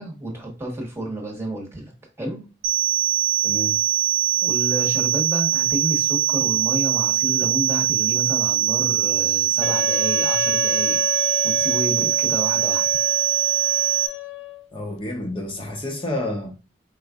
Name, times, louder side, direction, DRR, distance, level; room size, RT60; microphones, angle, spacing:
voice 1, 0.0-1.9 2.2-2.4 4.4-11.0 11.4-12.9, right 1 dB, 15° right, 1.2 m, -30 dB
sound 1, 2.6-14.1, right 12 dB, 85° right, 0.9 m, -22 dB
voice 2, 3.4-3.8 14.7-16.5, left 1 dB, 30° left, 0.9 m, -29 dB
Wind instrument woodwind instrument, 9.6-14.7, left 14 dB, 85° left, 0.3 m, -31 dB
5.1 x 4.0 x 2.4 m
head